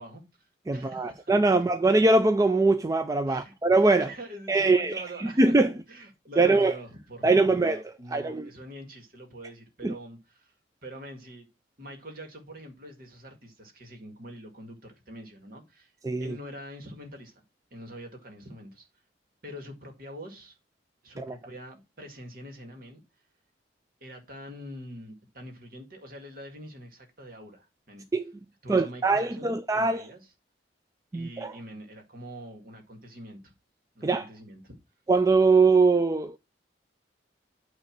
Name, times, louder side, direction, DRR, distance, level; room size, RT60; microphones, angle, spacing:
voice 1, 0.0-1.3 3.3-3.5 4.0-5.5 5.9-10.5 10.8-11.5 11.8-15.9 16.2-17.4 17.7-18.9 19.4-20.6 21.0-23.0 24.0-28.0 28.6-30.3 31.1-33.5 34.0-34.8, equal, 50° right, 2.0 m, -44 dB
voice 2, 0.7-4.1 4.5-5.7 6.4-6.7 7.2-7.8 8.1-8.5 9.8-9.9 16.0-16.3 21.2-21.3 28.1-28.3 28.7-30.0 31.1-31.5 34.0-34.3 35.1-36.4, right 3 dB, 20° right, 0.4 m, -22 dB
9.1 x 3.1 x 5.9 m
head